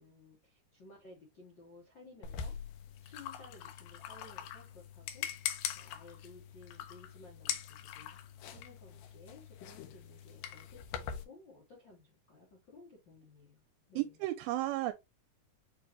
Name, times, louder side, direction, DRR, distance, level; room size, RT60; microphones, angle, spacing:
voice 1, 0.0-2.6 3.0-5.3 5.7-8.2 8.5-13.6 13.9-14.1, left 2 dB, 65° left, 1.1 m, -57 dB
sound 1, 2.2-11.2, left 9 dB, 80° left, 2.4 m, -42 dB
voice 2, 14.0-14.9, right 16 dB, 85° right, 2.4 m, -33 dB
6.7 x 2.6 x 2.9 m
omnidirectional pair, 4.3 m